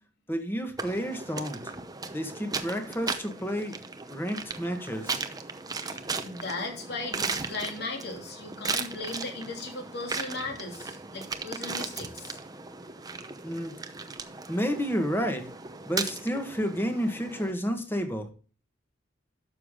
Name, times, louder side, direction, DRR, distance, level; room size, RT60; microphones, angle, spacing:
voice 1, 0.3-1.7 2.1-3.7 4.1-5.2 13.4-13.7 14.5-15.5 15.9-18.3, equal, 10° left, 5 dB, 1.6 m, -30 dB
sound 1, 0.8-17.5, right 4 dB, 20° right, 0.8 m, -37 dB
voice 2, 5.8-12.4, left 3 dB, 55° left, 2 dB, 3.1 m, -37 dB
12.0 x 6.9 x 3.7 m, 0.38 s
head